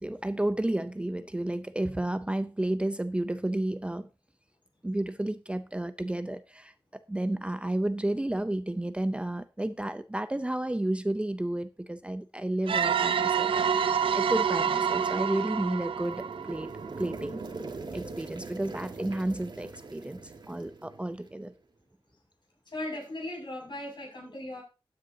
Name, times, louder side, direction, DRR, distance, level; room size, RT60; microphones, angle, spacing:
voice 1, 0.0-4.1 4.8-16.7 17.0-17.4 17.9-21.5, right 1 dB, 15° right, 0.5 m, -32 dB
sound 1, 12.7-17.2, right 7 dB, 85° right, 0.6 m, -28 dB
sound 2, 15.6-21.5, right 3 dB, 60° right, 1.7 m, -42 dB
voice 2, 22.7-24.6, left 1 dB, 60° left, 6.3 m, -37 dB
14.0 x 9.6 x 2.7 m
wide cardioid pair, 110°, 9 cm